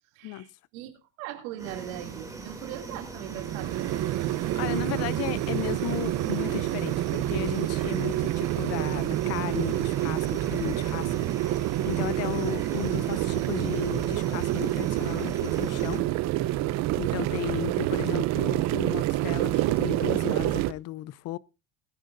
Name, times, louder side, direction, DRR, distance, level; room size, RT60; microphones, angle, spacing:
voice 1, 0.1-0.9 1.2-3.9, right 13 dB, 75° right, 2.9 m, -40 dB
sound 1, 1.6-16.0, right 3 dB, 10° right, 2.9 m, -40 dB
sound 2, 3.3-20.7, right 16 dB, 40° right, 0.6 m, -28 dB
voice 2, 4.3-16.0 17.0-21.4, left 15 dB, 40° left, 0.5 m, -35 dB
20.5 x 10.5 x 2.7 m
supercardioid pair, 140°, 42 cm